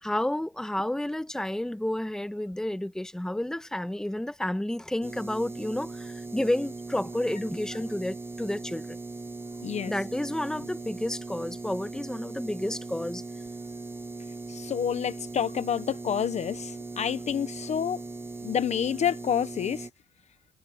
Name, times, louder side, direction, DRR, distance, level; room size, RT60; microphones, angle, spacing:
voice 1, 0.0-9.0 9.9-13.2, left 1 dB, 5° left, 1.3 m, -31 dB
sound 1, 5.0-19.9, right 3 dB, 15° right, 1.0 m, -39 dB
voice 2, 9.6-9.9 14.5-18.0 18.4-19.9, left 8 dB, 40° left, 1.0 m, -28 dB
cardioid pair, 110°, 17 cm